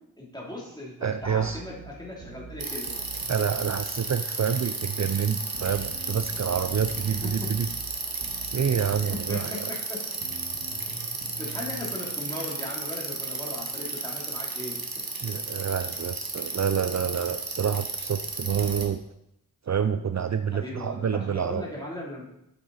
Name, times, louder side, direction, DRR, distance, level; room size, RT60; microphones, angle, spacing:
voice 1, 0.2-2.9 6.9-7.5 8.5-10.0 11.4-14.8 20.5-22.2, left 1 dB, 10° left, -4 dB, 3.3 m, -38 dB
voice 2, 1.0-1.6 3.3-7.7 8.5-9.7 15.2-19.0 19.7-21.6, right 7 dB, 50° right, 9 dB, 0.4 m, -27 dB
sound 1, 1.2-3.8 5.5-9.2 10.2-11.9, right 5 dB, 85° right, 1.7 m, -44 dB
Bicycle, 2.6-18.8, right 3 dB, 70° right, 1.5 m, -33 dB
8.7 x 7.7 x 4.1 m, 0.81 s
wide cardioid pair, 45°, 37 cm